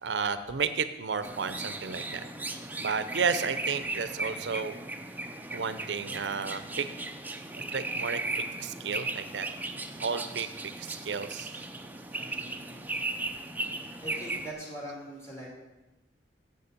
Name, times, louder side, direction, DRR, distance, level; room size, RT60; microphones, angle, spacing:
voice 1, 0.0-2.3 2.8-4.7 5.5-6.9 7.6-8.2 8.6-9.5 10.0-11.6, right 5 dB, 75° right, 12 dB, 0.6 m, -32 dB
sound 1, 1.2-14.5, right 2 dB, 10° right, 0.5 m, -37 dB
voice 2, 12.1-13.1 14.0-15.5, right 1 dB, 15° left, -4 dB, 2.9 m, -43 dB
7.7 x 6.9 x 6.7 m, 1.1 s
head